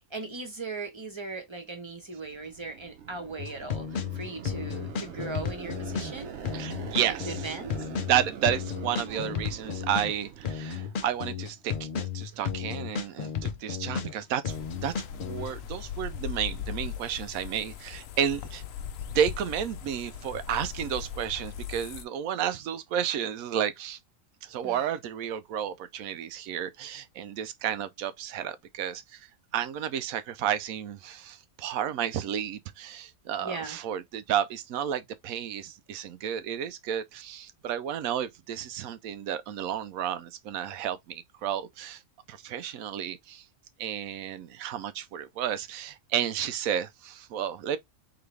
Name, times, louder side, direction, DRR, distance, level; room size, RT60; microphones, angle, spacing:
voice 1, 0.1-6.3 7.3-7.7 8.9-9.4 24.6-24.8 33.4-33.8, right 3 dB, 25° right, 1.0 m, -38 dB
sound 1, 2.0-11.8, right 8 dB, 60° right, 1.0 m, -44 dB
sound 2, 3.4-15.5, left 7 dB, 50° left, 0.6 m, -33 dB
voice 2, 6.5-7.6 8.1-14.6 14.8-18.6 19.1-24.0 24.4-29.3 29.5-42.0 42.3-43.4 43.8-47.8, right 9 dB, 90° right, 1.0 m, -32 dB
sound 3, 14.5-22.0, left 8 dB, 75° left, 1.0 m, -39 dB
3.9 x 3.3 x 3.3 m
omnidirectional pair, 1.4 m